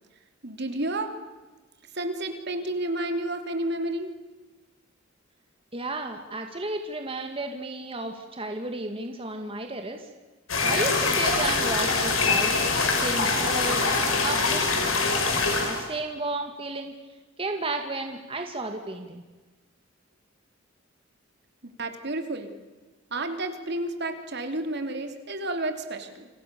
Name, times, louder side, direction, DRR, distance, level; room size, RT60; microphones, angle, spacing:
voice 1, 0.4-1.1 1.9-4.1 21.6-22.5 23.1-26.3, right 1 dB, 55° right, 6 dB, 3.4 m, -31 dB
voice 2, 5.7-10.1 10.6-12.5 13.0-13.9 14.2-15.0 15.5-16.9 17.4-19.2, right 2 dB, 30° right, 4 dB, 2.2 m, -33 dB
sound 1, 10.5-15.9, left 4 dB, 90° left, 6.3 m, -24 dB
29.5 x 27.5 x 7.1 m, 1.2 s
head